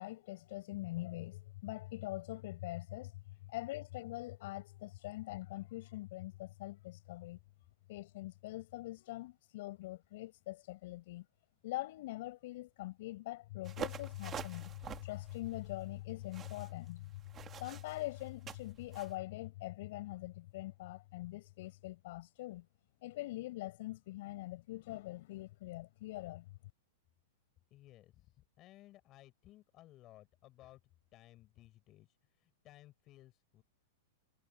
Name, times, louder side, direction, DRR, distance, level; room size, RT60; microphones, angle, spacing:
voice 1, 0.0-3.1 3.5-7.4 7.9-11.3 11.6-22.7 23.0-26.5, left 18 dB, 55° left, 6.0 m, -43 dB
sound 1, 13.6-19.1, right 9 dB, 20° right, 2.3 m, -47 dB
voice 2, 27.7-30.8 31.1-33.6, left 15 dB, 30° left, 7.6 m, -59 dB
supercardioid pair, 160°, 0 cm